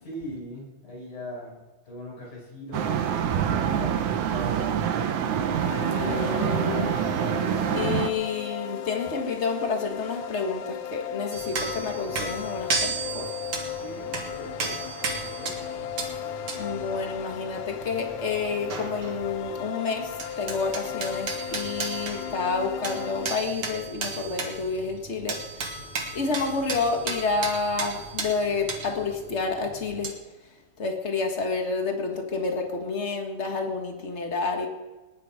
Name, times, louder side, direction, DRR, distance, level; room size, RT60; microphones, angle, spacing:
voice 1, 0.0-1.6 1.9-4.7 13.7-14.8 15.2-15.9, equal, 65° left, -5 dB, 7.0 m, -39 dB
sound 1, 2.7-8.1, right 8 dB, 70° right, 2.2 m, -26 dB
sound 2, 5.6-23.4, left 9 dB, 85° left, 2.4 m, -36 dB
voice 2, 5.9-7.0 7.7-13.3 16.6-25.9 26.1-30.2 30.8-34.7, left 4 dB, 35° left, 3 dB, 1.1 m, -29 dB
sound 3, 11.3-19.7 19.9-30.1, right 4 dB, 50° right, 2.3 m, -35 dB
20.5 x 10.5 x 5.0 m, 1.2 s
omnidirectional pair, 3.7 m